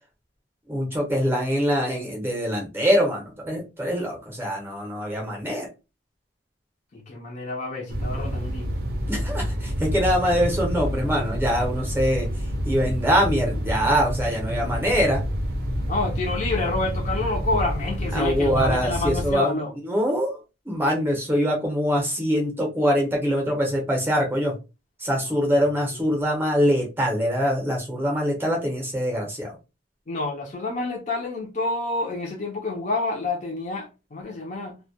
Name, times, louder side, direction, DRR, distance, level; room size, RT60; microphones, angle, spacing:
voice 1, 0.7-5.7 9.1-12.3 12.6-15.2 18.1-19.6 19.8-20.4 20.7-24.5 25.0-29.5, equal, 10° right, 0.6 m, -23 dB
voice 2, 6.9-8.8 15.9-19.7 25.2-25.4 30.1-34.8, left 2 dB, 35° left, 0.5 m, -28 dB
sound 1, 7.9-19.3, equal, 50° right, 0.5 m, -28 dB
2.2 x 2.1 x 2.6 m
head